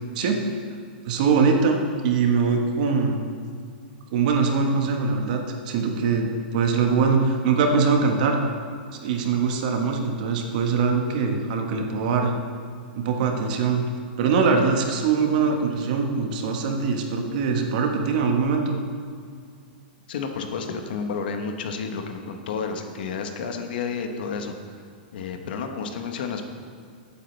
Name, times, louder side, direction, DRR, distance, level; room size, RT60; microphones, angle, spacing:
voice 1, 1.0-3.2 4.1-5.4 5.6-8.4 8.9-12.3 12.9-13.8 14.2-18.8, right 5 dB, 50° right, 3 dB, 1.3 m, -22 dB
voice 2, 20.1-24.5 25.1-26.4, left 5 dB, 65° left, 5 dB, 1.2 m, -31 dB
15.0 x 8.5 x 3.4 m, 2.2 s
supercardioid pair, 155°, 5 cm